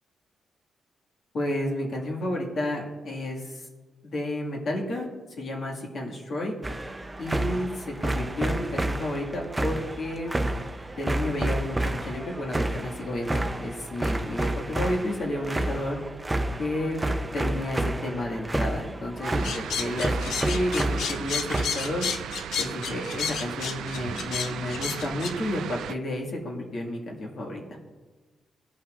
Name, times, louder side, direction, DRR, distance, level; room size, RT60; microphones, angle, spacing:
voice 1, 1.3-3.6 4.0-5.1 5.4-6.5 7.2-10.4 11.0-16.0 16.6-17.0 17.3-22.1 22.6-27.6, left 1 dB, 60° left, -1 dB, 1.9 m, -31 dB
sound 1, 6.6-21.6, right 1 dB, 15° right, 0.6 m, -30 dB
sound 2, 19.2-26.0, right 9 dB, 85° right, 0.3 m, -37 dB
sound 3, 19.4-25.3, left 7 dB, 80° left, 0.5 m, -32 dB
16.0 x 5.6 x 2.5 m, 1.3 s
cardioid pair, 95°, 0 cm